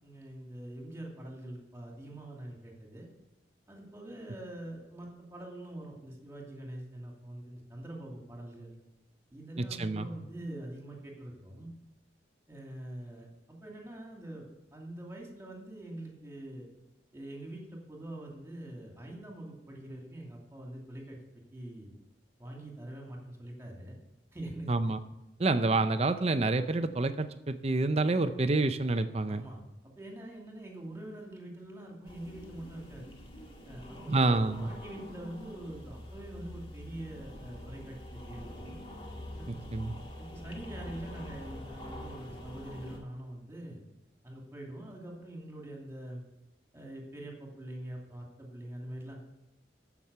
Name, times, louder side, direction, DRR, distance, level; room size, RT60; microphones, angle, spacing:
voice 1, 0.0-3.1 3.7-8.7 9.3-11.7 12.5-14.5 14.7-16.7 17.1-21.2 21.5-21.9 22.4-23.9 24.3-24.9 29.2-33.1 33.6-38.8 39.4-43.8 44.2-46.2 46.7-49.2, right 1 dB, 15° right, -1 dB, 2.6 m, -44 dB
voice 2, 9.6-10.1 24.7-25.0 25.4-29.4 34.1-34.7 39.7-39.9, right 2 dB, 35° right, 11 dB, 0.6 m, -28 dB
sound 1, 32.0-43.0, left 1 dB, 30° left, 2.0 m, -45 dB
14.0 x 6.0 x 6.9 m, 0.94 s
head